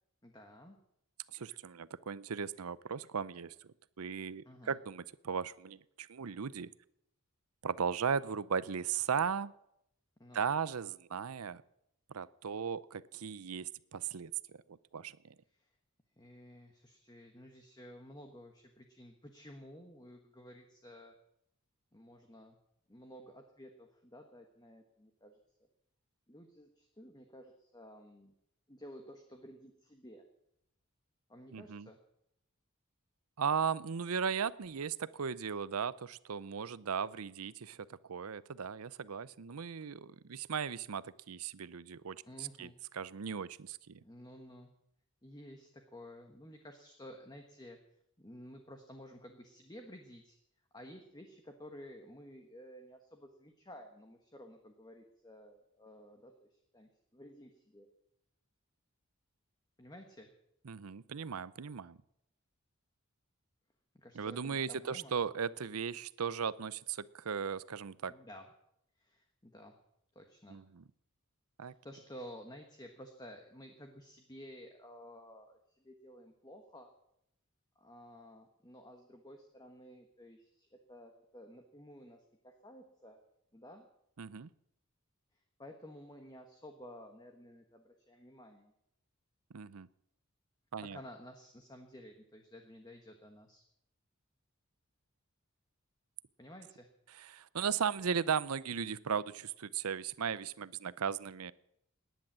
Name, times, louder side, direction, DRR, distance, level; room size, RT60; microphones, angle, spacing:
voice 1, 0.2-0.8 4.4-4.7 10.2-10.4 15.5-15.7 16.2-21.1 21.9-22.6 22.9-25.7 26.3-28.3 28.7-30.2 31.3-32.0 42.2-42.8 44.0-44.7 45.2-47.8 48.2-50.4 50.7-57.9 59.8-60.3 63.9-65.1 68.1-68.5 69.0-69.7 70.1-70.6 71.6-76.9 77.7-83.2 83.5-83.9 85.3-88.7 90.8-93.6 96.4-96.9, equal, 20° left, 4 dB, 1.4 m, -53 dB
voice 2, 1.3-6.7 7.6-9.5 10.3-11.6 12.1-15.3 31.5-31.9 33.4-44.0 60.6-62.0 64.1-68.1 70.5-70.8 71.6-71.7 84.2-84.5 89.5-89.9 90.7-91.0 97.1-101.5, right 6 dB, 85° right, 18 dB, 0.6 m, -37 dB
18.0 x 10.5 x 7.5 m, 0.78 s
head